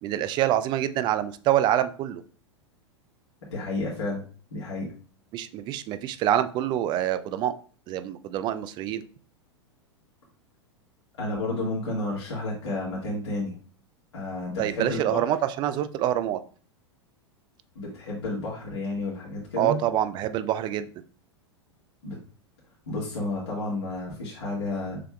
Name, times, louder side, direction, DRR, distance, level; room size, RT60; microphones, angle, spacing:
voice 1, 0.0-2.2 5.3-7.5 7.9-9.0 14.6-16.4 19.6-20.9, right 12 dB, 30° right, 12 dB, 0.4 m, -26 dB
voice 2, 3.5-4.2 4.5-4.9 11.2-13.5 14.1-15.3 17.7-19.8 22.0-22.2 22.8-25.0, left 2 dB, 65° left, -5 dB, 1.7 m, -31 dB
6.6 x 3.4 x 2.3 m, 0.41 s
figure-of-eight pair, 90°, 15 cm